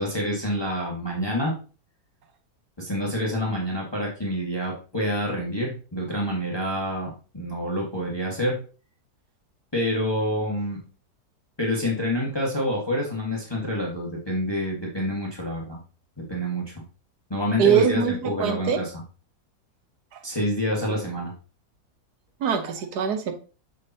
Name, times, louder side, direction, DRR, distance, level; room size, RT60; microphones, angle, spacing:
voice 1, 0.0-1.5 2.8-8.5 9.7-10.8 11.6-15.8 16.3-16.7 17.3-19.0 20.2-21.3, equal, 15° left, -2 dB, 1.5 m, -27 dB
voice 2, 17.6-18.8 20.9-21.0 22.4-23.3, right 7 dB, 85° right, 7 dB, 1.5 m, -23 dB
6.5 x 6.5 x 2.8 m, 0.36 s
omnidirectional pair, 1.7 m